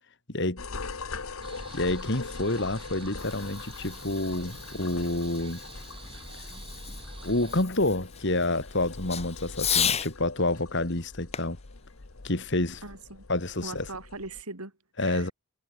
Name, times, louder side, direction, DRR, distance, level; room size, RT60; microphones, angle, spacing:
voice 1, 0.3-0.6 1.7-5.6 7.2-11.6 12.2-12.8 13.3-13.9 15.0-15.3, left 2 dB, 55° left, 2.9 m, -28 dB
sound 1, 0.6-14.4, left 4 dB, 70° left, 1.3 m, -43 dB
sound 2, 1.4-7.6, right 2 dB, 25° right, 3.4 m, -46 dB
Fireworks, 2.9-10.1 11.3-13.0, left 8 dB, 30° left, 3.6 m, -35 dB
voice 2, 12.8-13.3 13.6-15.3, right 3 dB, 90° right, 5.7 m, -40 dB
head